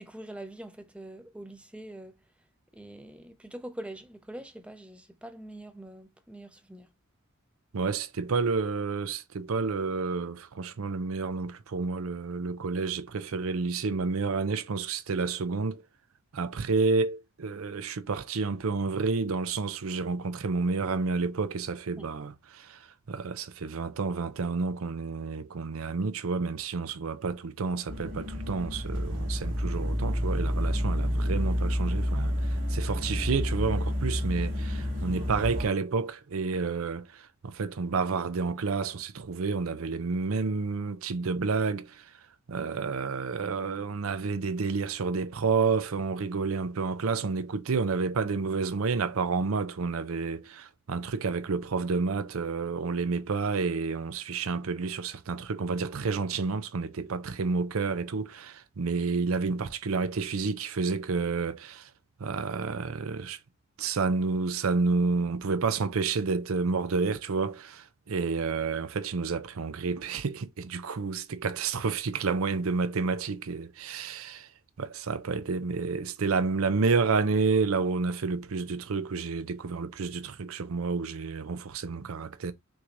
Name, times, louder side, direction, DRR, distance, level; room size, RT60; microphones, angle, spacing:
voice 1, 0.0-2.2 2.7-6.9 22.0-22.1, right 1 dB, 5° right, 0.6 m, -44 dB
voice 2, 7.7-15.8 16.3-22.8 23.1-32.3 32.7-42.1 42.5-61.9 62.2-63.4 63.8-74.5 74.8-82.5, right 4 dB, 90° right, 0.6 m, -30 dB
sound 1, 27.9-35.7, equal, 70° right, 2.6 m, -29 dB
6.0 x 3.2 x 2.6 m
head